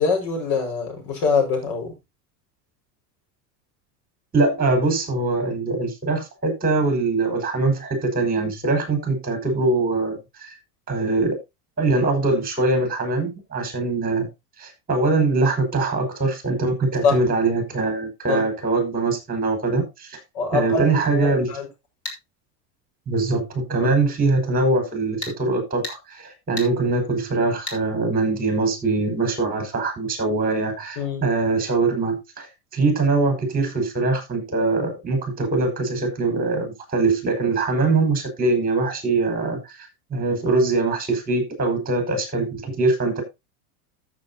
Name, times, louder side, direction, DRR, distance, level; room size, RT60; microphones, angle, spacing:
voice 1, 0.0-1.9 17.0-17.2 18.3-18.4 20.3-21.7 23.8-24.0 31.0-31.2, left 5 dB, 55° left, 5.8 m, -24 dB
voice 2, 4.3-10.5 10.9-11.4 11.8-14.3 14.6-20.2 20.5-21.5 23.1-32.5 32.7-43.2, right 3 dB, 20° right, 5.6 m, -22 dB
sound 1, 22.0-22.2 25.2-25.4 25.8-26.0 26.6-26.7 27.7-27.8, left 1 dB, 30° left, 3.8 m, -32 dB
14.0 x 7.5 x 2.9 m
supercardioid pair, 125°, 48 cm